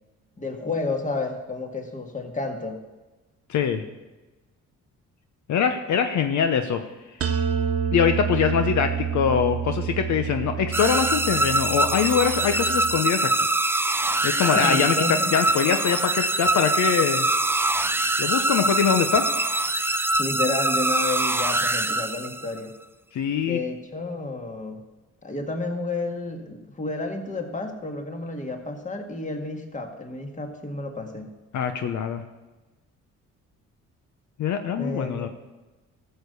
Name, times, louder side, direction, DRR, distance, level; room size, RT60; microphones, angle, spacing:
voice 1, 0.4-2.8 14.5-15.3 20.2-22.7 23.4-24.8 25.2-31.3 34.8-35.3, left 2 dB, 25° left, 4 dB, 1.9 m, -31 dB
voice 2, 3.5-3.8 5.5-6.8 7.9-13.5 14.2-14.9 15.3-17.3 18.2-19.2 23.1-23.6 31.5-32.2 34.4-35.3, left 7 dB, 70° left, 7 dB, 0.9 m, -23 dB
sound 1, 7.2-13.0, right 8 dB, 50° right, 1.1 m, -29 dB
sound 2, 10.7-22.6, right 2 dB, 10° right, 0.4 m, -24 dB
13.5 x 6.8 x 6.8 m, 1.1 s
cardioid pair, 90°, 30 cm